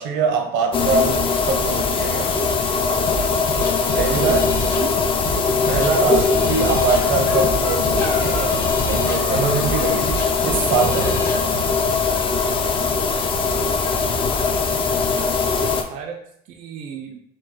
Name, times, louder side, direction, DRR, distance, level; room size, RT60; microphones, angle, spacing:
voice 1, 0.0-2.4 4.0-4.5 5.7-11.3, right 4 dB, 70° right, 4 dB, 0.8 m, -23 dB
sound 1, 0.7-15.8, left 4 dB, 25° left, 0.4 m, -21 dB
sound 2, 3.1-11.7, equal, 45° left, 1.0 m, -30 dB
voice 2, 3.9-4.9 15.9-16.2 16.5-17.2, right 6 dB, 45° right, 2 dB, 0.4 m, -33 dB
sound 3, 6.9-8.8 9.0-10.1 11.0-11.8 12.0-12.9 13.1-13.2 13.5-13.6 13.8-14.9, left 2 dB, 80° left, 1.3 m, -35 dB
4.3 x 2.2 x 4.3 m, 0.71 s
cardioid pair, 150°, 20 cm